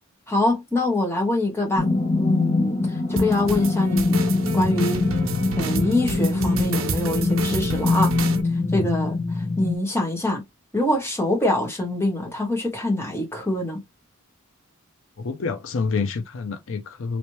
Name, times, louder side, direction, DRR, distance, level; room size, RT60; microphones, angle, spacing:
voice 1, 0.3-1.9 2.2-2.8 3.1-4.2 4.5-5.1 5.6-8.1 8.7-10.4 10.7-13.8, left 1 dB, 10° left, 1.5 m, -24 dB
sound 1, 1.8-9.8, left 3 dB, 35° left, 1.0 m, -23 dB
sound 2, 3.2-8.4, right 3 dB, 70° right, 0.9 m, -30 dB
voice 2, 15.2-17.2, left 4 dB, 65° left, 0.5 m, -28 dB
3.2 x 2.9 x 3.0 m
head